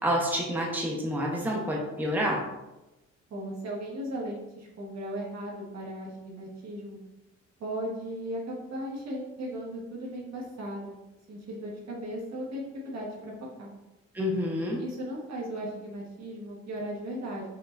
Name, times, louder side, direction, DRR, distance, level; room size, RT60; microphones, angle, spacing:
voice 1, 0.0-2.4 14.1-14.8, equal, 5° right, -2 dB, 1.0 m, -28 dB
voice 2, 3.3-7.0 7.6-11.0 11.3-13.3 13.6-13.7 14.8-17.4, right 1 dB, 60° right, -2 dB, 1.4 m, -37 dB
5.6 x 3.6 x 2.6 m, 1.0 s
cardioid pair, 90°, 30 cm